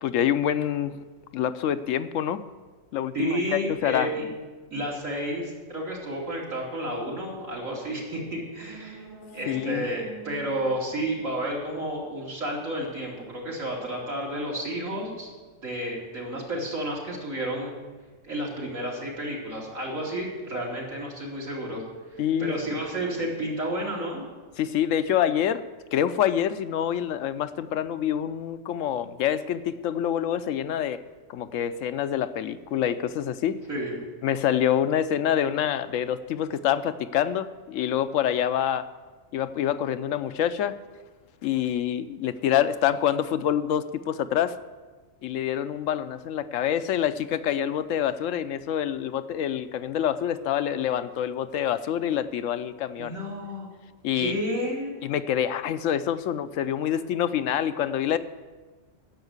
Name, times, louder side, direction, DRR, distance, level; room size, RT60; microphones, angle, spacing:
voice 1, 0.0-1.0 1.3-2.5 2.9-4.1 9.5-9.9 22.2-22.5 24.6-25.6 25.9-31.0 31.3-33.6 34.2-38.9 39.3-40.8 41.4-44.6 45.2-53.1 54.0-54.4 55.0-58.2, left 10 dB, 75° left, 12 dB, 0.9 m, -26 dB
voice 2, 3.1-4.3 4.7-9.0 9.3-15.3 15.6-17.7 18.2-21.8 22.1-24.2 33.7-33.9 53.0-53.7 54.1-55.1, right 1 dB, 85° right, -4 dB, 3.3 m, -31 dB
sound 1, 8.4-12.2 12.5-12.6, right 5 dB, 30° right, 2.9 m, -46 dB
10.5 x 7.3 x 8.0 m, 1.3 s
omnidirectional pair, 1.3 m